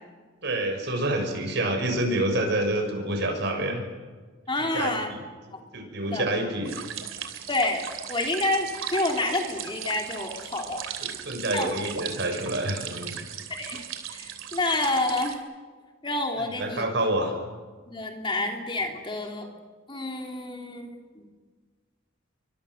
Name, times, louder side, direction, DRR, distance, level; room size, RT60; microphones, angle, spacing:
voice 1, 0.4-3.8 4.7-5.2 5.7-6.7 11.0-13.2 16.4-17.3, right 1 dB, 55° right, 4 dB, 6.4 m, -27 dB
voice 2, 4.5-5.1 5.5-5.6 6.0-6.2 7.5-7.8 8.1-10.8 11.5-11.7 13.5-15.4 16.0-16.8 17.9-19.5 19.9-21.2, left 2 dB, 25° left, 2 dB, 3.0 m, -28 dB
sound 1, 6.6-15.3, right 8 dB, 80° right, 3.0 m, -37 dB
29.5 x 24.0 x 6.5 m, 1.4 s
head